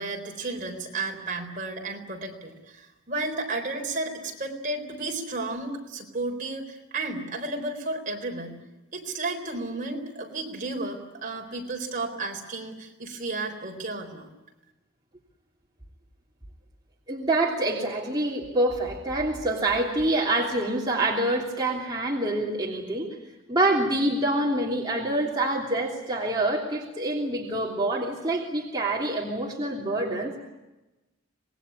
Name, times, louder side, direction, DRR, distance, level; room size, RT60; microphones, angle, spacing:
voice 1, 0.0-8.6 8.9-14.3, right 2 dB, 40° right, 2 dB, 4.2 m, -33 dB
voice 2, 17.1-23.1 23.5-30.4, right 1 dB, 20° right, -3 dB, 3.1 m, -26 dB
26.5 x 20.5 x 9.7 m, 1.0 s
head